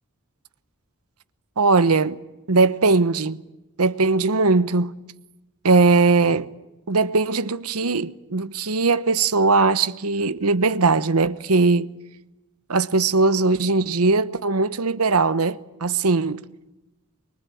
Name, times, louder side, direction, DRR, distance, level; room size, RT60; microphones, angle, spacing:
voice 1, 1.6-2.2 2.5-3.4 3.8-4.9 5.6-6.5 6.9-11.9 12.7-16.4, right 3 dB, 85° right, 1.0 m, -20 dB
25.0 x 23.5 x 8.6 m
head